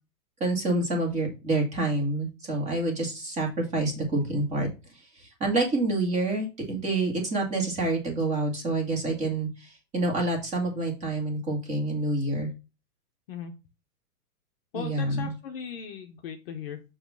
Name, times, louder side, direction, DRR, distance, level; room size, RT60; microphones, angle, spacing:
voice 1, 0.4-4.7 5.1-12.5 14.7-15.3, right 2 dB, 15° right, 1 dB, 1.9 m, -27 dB
voice 2, 14.7-16.8, left 7 dB, 35° left, 5 dB, 0.8 m, -38 dB
7.8 x 3.1 x 5.9 m, 0.29 s
supercardioid pair, 170°, 48 cm